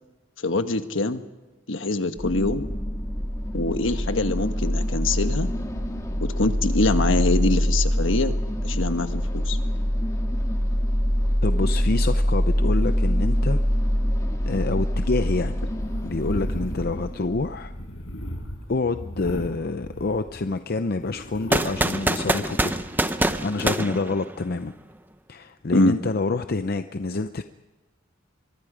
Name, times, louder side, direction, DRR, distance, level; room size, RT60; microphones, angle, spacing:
voice 1, 0.4-1.2 1.7-2.7 3.5-5.5 6.2-8.3 8.6-9.6 25.7-26.0, left 2 dB, 70° left, 8 dB, 1.3 m, -24 dB
sound 1, 2.2-18.1, equal, 15° left, 2.1 m, -24 dB
voice 2, 11.4-13.6 14.5-15.6 16.0-17.7 18.7-22.7 23.1-24.7 25.3-27.4, left 3 dB, 50° left, 9 dB, 0.6 m, -27 dB
sound 2, 15.8-20.6 21.0-23.4, equal, 85° left, 5.7 m, -38 dB
sound 3, 21.5-24.7, right 1 dB, 10° right, 0.8 m, -25 dB
24.0 x 23.5 x 5.0 m, 1.2 s
head